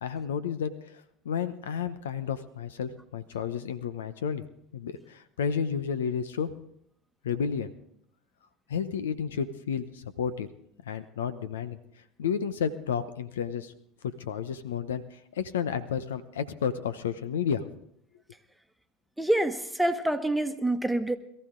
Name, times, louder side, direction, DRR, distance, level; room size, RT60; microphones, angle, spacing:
voice 1, 0.0-4.4 4.7-6.5 7.2-7.7 8.7-10.5 10.9-11.8 12.2-13.7 14.0-17.7, left 7 dB, 80° left, 13 dB, 0.8 m, -31 dB
voice 2, 19.2-21.2, right 1 dB, 5° right, 8 dB, 1.3 m, -26 dB
22.0 x 14.0 x 3.8 m, 0.72 s
hypercardioid pair, 75°, 0 cm